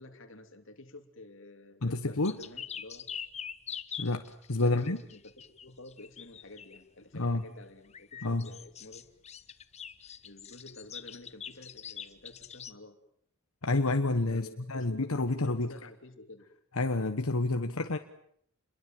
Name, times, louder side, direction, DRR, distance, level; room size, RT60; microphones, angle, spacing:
voice 1, 0.0-3.1 4.6-9.1 10.2-13.0 14.3-16.5, left 2 dB, 60° left, 6 dB, 3.0 m, -50 dB
voice 2, 1.8-2.4 4.0-5.0 7.2-7.4 8.2-8.5 13.6-15.7 16.8-18.0, left 2 dB, 85° left, 6 dB, 1.3 m, -29 dB
sound 1, 2.2-6.8 7.8-12.7, left 8 dB, 30° left, 1.0 m, -43 dB
29.0 x 22.5 x 7.6 m, 0.68 s
head